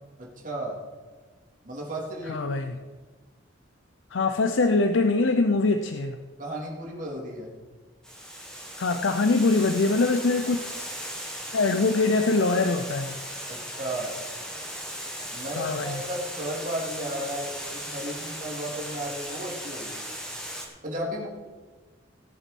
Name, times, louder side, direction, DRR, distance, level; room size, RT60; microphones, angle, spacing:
voice 1, 0.2-0.8 1.6-2.9 6.4-7.5 13.5-14.2 15.3-20.0 20.8-21.3, right 1 dB, 45° right, -3 dB, 3.2 m, -34 dB
voice 2, 2.2-2.8 4.1-6.2 8.8-10.6 11.5-13.2 15.5-16.0, left 3 dB, 75° left, 8 dB, 0.6 m, -23 dB
Water, 8.0-20.7, equal, 5° left, 1.9 m, -37 dB
18.0 x 7.3 x 5.4 m, 1.4 s
head